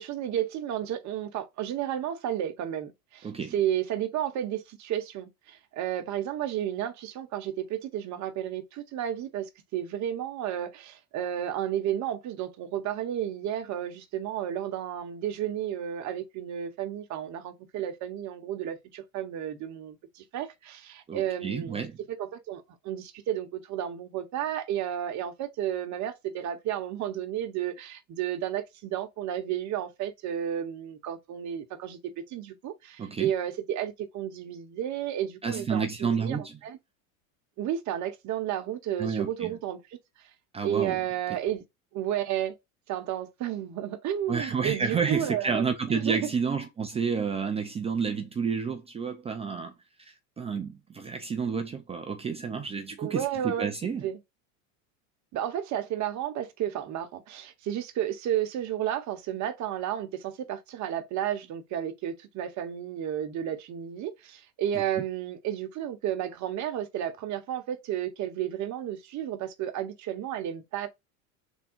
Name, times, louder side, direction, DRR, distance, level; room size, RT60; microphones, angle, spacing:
voice 1, 0.0-36.8 37.6-39.8 40.6-41.6 41.9-42.5 42.9-46.3 53.0-53.7 54.0-54.2 55.3-70.9, right 10 dB, 40° right, 1.0 m, -32 dB
voice 2, 21.1-22.0 33.0-33.3 35.4-36.6 39.0-39.6 40.5-41.0 44.3-49.7 50.0-54.1 64.7-64.8, right 5 dB, 15° right, 0.3 m, -30 dB
3.6 x 2.2 x 4.4 m
supercardioid pair, 110°, 42 cm